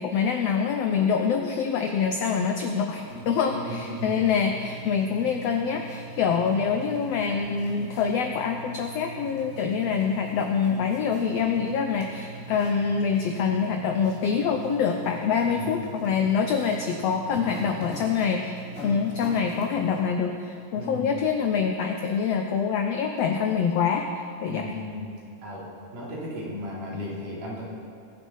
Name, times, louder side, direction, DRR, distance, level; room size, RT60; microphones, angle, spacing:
voice 1, 0.0-24.1 24.4-24.7, left 6 dB, 85° left, 4 dB, 1.4 m, -25 dB
sound 1, 3.0-20.0, right 3 dB, 20° left, 3.9 m, -42 dB
voice 2, 3.4-4.2 15.4-15.7 20.8-21.1 24.5-25.1 25.4-25.6 25.9-27.6, left 1 dB, 75° right, -6 dB, 4.9 m, -35 dB
21.5 x 7.2 x 5.5 m, 2.5 s
omnidirectional pair, 3.8 m